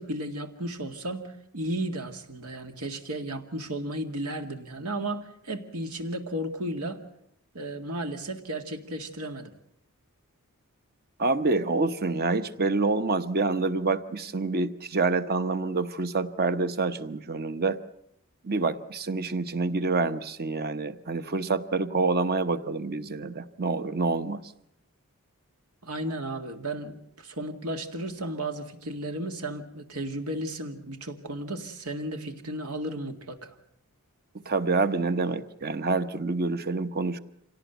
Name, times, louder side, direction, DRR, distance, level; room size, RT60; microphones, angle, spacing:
voice 1, 0.0-7.0 7.5-9.5 25.8-33.5, right 1 dB, 85° right, 6 dB, 2.2 m, -34 dB
voice 2, 11.2-17.8 18.4-24.4 34.4-37.2, right 3 dB, 45° right, 11 dB, 1.0 m, -27 dB
26.0 x 17.5 x 8.1 m, 0.73 s
head